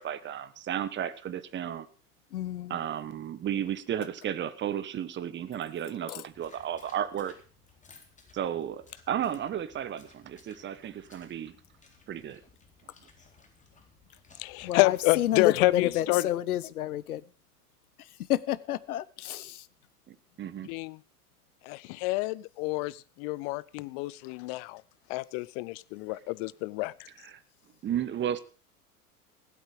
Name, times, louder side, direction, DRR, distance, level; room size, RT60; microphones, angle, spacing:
voice 1, 0.0-1.9 2.7-7.3 8.3-11.5 12.1-12.4 20.1-20.7 27.2-27.4 27.8-28.4, right 10 dB, 25° right, 1.3 m, -33 dB
voice 2, 2.3-2.8 6.1-6.2 14.6-17.2 18.3-19.6, left 12 dB, 70° left, 0.9 m, -30 dB
sound 1, 6.3-16.0, left 4 dB, 15° left, 3.9 m, -59 dB
voice 3, 14.4-16.3 20.6-21.0 21.6-24.8 25.1-27.1, left 21 dB, 40° left, 0.7 m, -28 dB
16.0 x 12.5 x 5.0 m
figure-of-eight pair, 85°, 46 cm